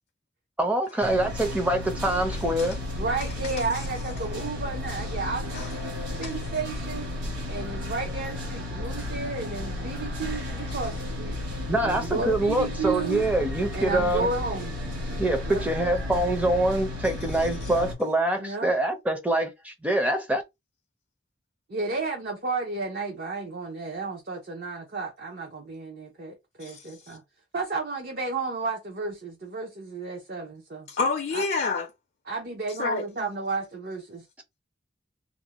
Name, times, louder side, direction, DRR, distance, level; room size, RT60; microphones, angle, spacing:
voice 1, 0.6-2.8 11.7-14.3 15.2-20.4, right 1 dB, 10° right, 0.5 m, -25 dB
sound 1, 1.0-17.9, left 1 dB, 80° right, 1.1 m, -33 dB
voice 2, 3.0-5.7 6.2-7.1 7.5-11.4 11.8-13.3 13.7-14.7 15.5-15.6 18.4-18.7 21.7-27.2 27.5-30.9 31.3-31.5 32.3-34.2, right 3 dB, 50° right, 0.6 m, -32 dB
voice 3, 26.6-27.2 30.9-31.9 32.8-33.1, left 4 dB, 50° left, 0.4 m, -28 dB
2.5 x 2.1 x 2.8 m
head